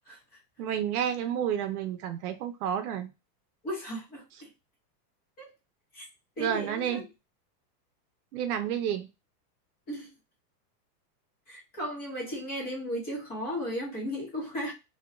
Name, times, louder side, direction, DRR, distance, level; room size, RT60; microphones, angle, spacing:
voice 1, 0.6-3.1 6.4-7.1 8.3-9.1, right 9 dB, 65° right, 0.7 m, -30 dB
voice 2, 3.6-4.5 5.4-5.5 5.9-6.1 6.4-7.0 9.9-10.1 11.5-14.7, equal, 20° left, 0.9 m, -35 dB
2.8 x 2.3 x 3.0 m
supercardioid pair, 170°, 48 cm